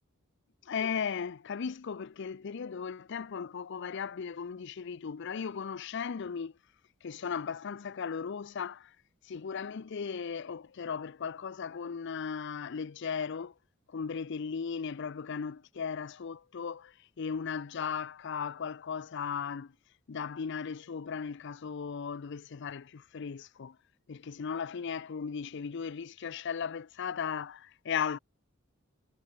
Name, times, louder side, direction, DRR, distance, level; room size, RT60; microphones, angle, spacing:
voice 1, 0.7-6.5 7.0-8.9 9.3-13.5 13.9-19.7 20.1-23.8 24.1-28.2, left 6 dB, 60° left, 0.5 m, -36 dB
head